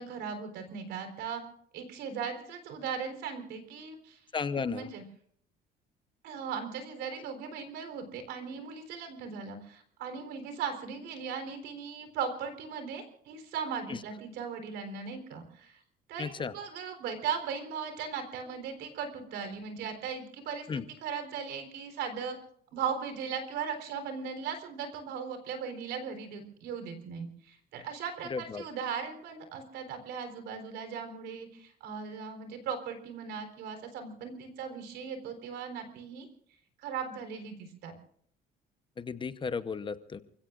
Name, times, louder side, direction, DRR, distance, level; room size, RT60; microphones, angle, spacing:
voice 1, 0.0-1.4 1.7-4.2 4.6-5.0 6.2-15.8 16.1-22.4 22.7-36.3 36.8-37.9, right 6 dB, 85° right, 7 dB, 4.0 m, -38 dB
voice 2, 4.3-4.9 13.9-14.0 16.2-16.5 20.7-20.9 28.3-28.6 39.0-40.2, left 5 dB, 30° left, 12 dB, 0.9 m, -34 dB
29.0 x 16.5 x 2.5 m, 0.62 s
cardioid pair, 110°, 17 cm